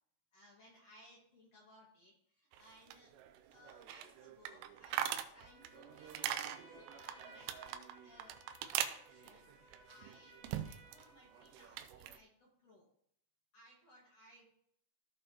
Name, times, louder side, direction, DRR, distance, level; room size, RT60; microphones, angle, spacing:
voice 1, 0.3-3.2 3.5-8.4 8.7-12.9 13.5-14.7, equal, 55° left, -3 dB, 2.0 m, -63 dB
sound 1, 2.5-11.1 11.3-12.2, right 11 dB, 90° right, 2.8 m, -42 dB
Trumpet, 5.3-11.8, right 1 dB, 50° right, 1.4 m, -62 dB
16.0 x 5.5 x 2.8 m, 0.69 s
omnidirectional pair, 4.8 m